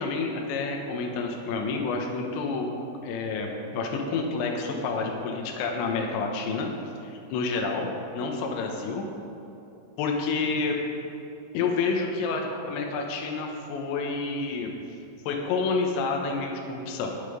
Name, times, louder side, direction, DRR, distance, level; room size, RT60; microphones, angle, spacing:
voice 1, 0.0-2.7 3.0-6.7 7.0-7.9 8.1-9.0 10.0-10.8 11.5-14.7 15.3-17.1, left 4 dB, 75° left, 1 dB, 3.3 m, -29 dB
14.5 x 9.2 x 5.1 m, 3.0 s
omnidirectional pair, 5.7 m